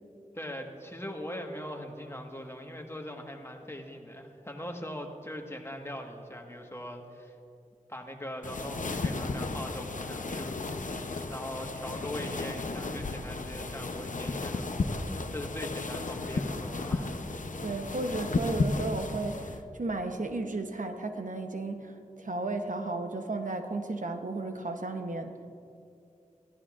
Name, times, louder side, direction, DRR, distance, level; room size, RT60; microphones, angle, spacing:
voice 1, 0.3-7.4 7.9-17.1, equal, 20° left, 2 dB, 1.4 m, -41 dB
sound 1, 8.4-19.6, left 3 dB, 75° left, 0.7 m, -34 dB
voice 2, 17.6-25.3, right 2 dB, 75° right, 5 dB, 0.9 m, -34 dB
21.0 x 14.5 x 2.5 m, 2.5 s
wide cardioid pair, 55°, 13 cm